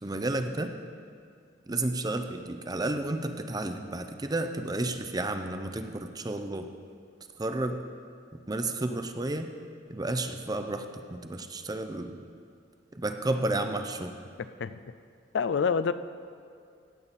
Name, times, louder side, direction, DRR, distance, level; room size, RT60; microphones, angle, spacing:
voice 1, 0.0-0.8 1.7-6.7 7.4-7.8 8.5-9.5 9.9-12.2 12.9-14.2, right 2 dB, 20° right, 7 dB, 0.6 m, -32 dB
voice 2, 15.3-15.9, left 6 dB, 70° left, 13 dB, 0.4 m, -26 dB
16.0 x 8.4 x 4.2 m, 2.3 s
head